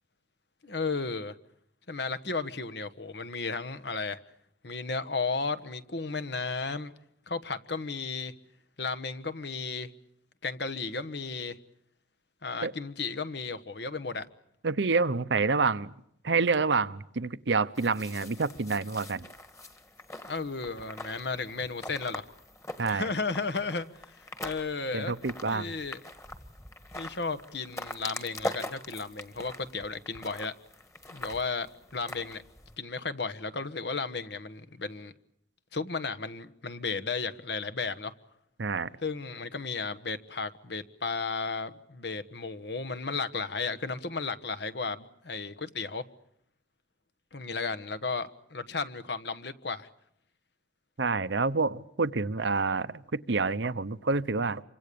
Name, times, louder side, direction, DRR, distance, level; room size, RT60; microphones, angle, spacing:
voice 1, 0.6-1.3 1.9-4.2 4.6-6.9 7.3-8.3 8.8-9.9 10.4-11.6 12.4-14.3 20.2-22.2 22.9-25.1 25.4-26.0 26.9-30.5 31.1-32.4 32.8-35.1 35.7-38.1 39.0-46.0 47.3-49.9, left 4 dB, 65° left, 1.3 m, -34 dB
voice 2, 14.6-15.9 16.2-19.3 22.8-23.1 24.9-25.7 38.6-38.9 51.0-54.6, right 4 dB, 75° right, 0.9 m, -28 dB
sound 1, 17.8-32.8, left 1 dB, 15° left, 1.6 m, -43 dB
27.5 x 25.0 x 6.9 m
head